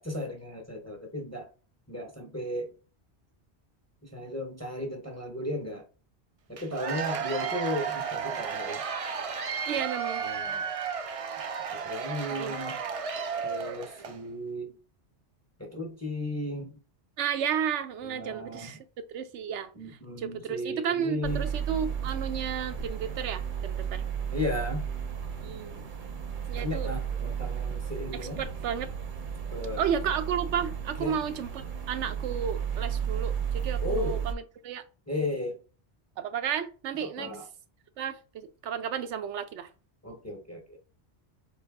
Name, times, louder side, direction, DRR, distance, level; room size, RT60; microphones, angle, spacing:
voice 1, 0.0-1.5 1.9-2.7 4.0-5.8 6.5-8.8 10.2-10.6 11.7-12.8 13.4-14.7 15.6-16.8 18.1-18.7 19.7-21.5 24.3-24.8 26.5-28.4 29.5-29.8 31.0-31.2 33.8-34.3 35.1-35.6 37.0-37.4 40.0-40.8, left 1 dB, 15° left, 0.6 m, -35 dB
Cheering / Applause / Crowd, 6.6-14.2, right 6 dB, 70° right, 0.3 m, -33 dB
voice 2, 9.7-10.2 12.3-12.6 17.2-18.8 19.1-24.0 25.4-25.9 26.5-26.9 28.1-28.9 29.8-34.8 36.2-37.3 38.0-39.7, right 8 dB, 85° right, 0.9 m, -33 dB
sound 1, 21.2-34.3, right 8 dB, 50° right, 0.7 m, -33 dB
4.0 x 2.7 x 3.5 m
omnidirectional pair, 1.2 m